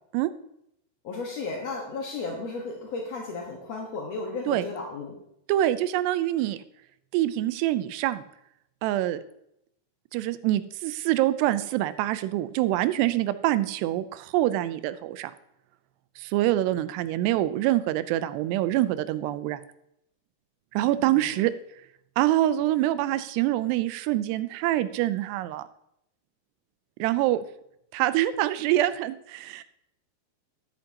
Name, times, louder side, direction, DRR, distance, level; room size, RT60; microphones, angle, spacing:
voice 1, 1.0-5.1 20.9-21.3, left 3 dB, 65° left, -1 dB, 1.6 m, -34 dB
voice 2, 5.5-6.6 7.1-8.2 8.8-9.2 10.1-15.3 16.2-19.6 20.7-21.5 22.2-25.7 27.0-27.5 27.9-29.6, right 14 dB, 85° right, 14 dB, 2.7 m, -25 dB
13.0 x 9.7 x 2.8 m, 0.77 s
omnidirectional pair, 4.8 m